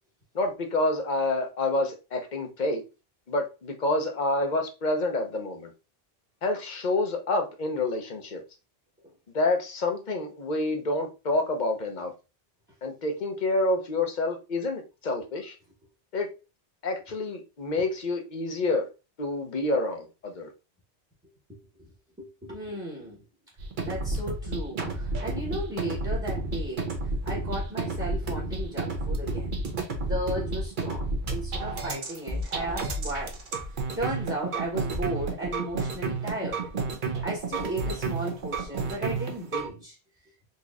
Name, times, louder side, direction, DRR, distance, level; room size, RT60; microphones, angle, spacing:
voice 1, 0.3-2.8 3.3-5.7 6.4-8.4 9.3-12.1 12.8-15.6 16.1-16.3 16.8-18.9 19.2-20.5, left 2 dB, 45° left, 0.8 m, -28 dB
voice 2, 22.2-23.2 23.9-26.9 27.2-29.5 30.0-33.4 34.0-36.6 37.2-40.0, right 1 dB, 10° right, 1.0 m, -35 dB
sound 1, 23.6-39.7, right 3 dB, 50° right, 0.8 m, -31 dB
4.0 x 2.9 x 2.4 m
omnidirectional pair, 1.1 m